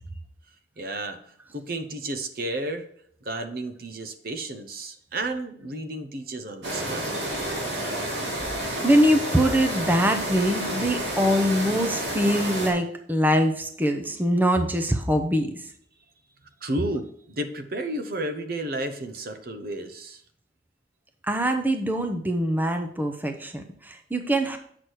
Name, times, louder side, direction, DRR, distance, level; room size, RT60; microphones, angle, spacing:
voice 1, 0.8-2.9 3.2-7.3 16.6-20.2, right 1 dB, 55° right, 8 dB, 0.8 m, -32 dB
Industrial ambiance, 6.6-12.7, right 1 dB, 90° right, 2.8 m, -30 dB
voice 2, 8.8-15.7 21.3-24.6, equal, 10° right, 5 dB, 0.7 m, -23 dB
8.1 x 6.1 x 4.6 m, 0.64 s
head